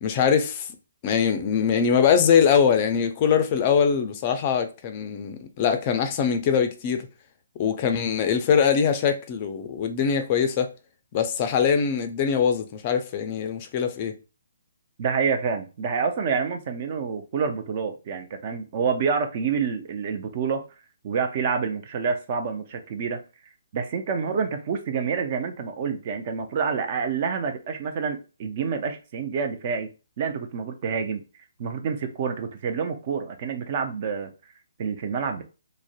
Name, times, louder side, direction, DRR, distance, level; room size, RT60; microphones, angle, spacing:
voice 1, 0.0-0.7 1.0-7.1 7.6-10.7 11.1-14.1, left 7 dB, 35° left, 0.3 m, -22 dB
voice 2, 15.0-20.6 21.0-23.2 23.7-29.9 30.2-31.2 31.6-34.3 34.8-35.4, right 6 dB, 40° right, 0.4 m, -28 dB
2.5 x 2.0 x 2.4 m
figure-of-eight pair, 135°, 0 cm